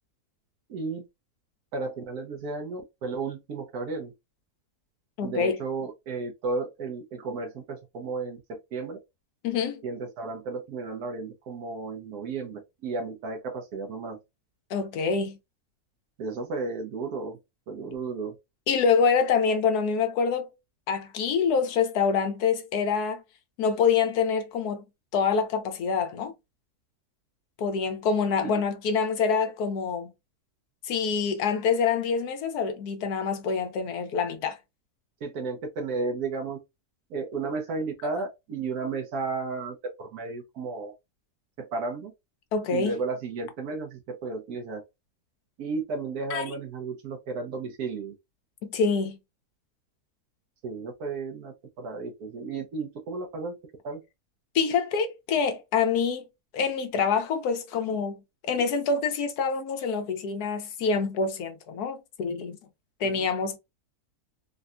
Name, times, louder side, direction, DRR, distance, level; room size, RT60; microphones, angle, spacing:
voice 1, 0.7-1.0 1.7-4.1 5.2-9.0 9.8-14.2 16.2-17.4 17.7-18.4 28.4-28.6 35.2-36.6 37.1-40.9 41.6-42.1 42.7-44.8 45.6-48.2 50.6-53.6 53.8-54.0 63.0-63.2, right 3 dB, 80° right, 1.2 m, -33 dB
voice 2, 5.2-5.6 9.4-9.8 14.7-15.4 18.7-20.5 20.9-23.2 23.6-24.8 25.1-26.3 27.6-30.1 30.8-34.6 42.5-42.9 46.3-46.4 48.7-49.2 54.5-56.3 56.5-62.6 63.0-63.6, left 5 dB, 85° left, 1.3 m, -26 dB
3.8 x 2.2 x 2.4 m
omnidirectional pair, 1.6 m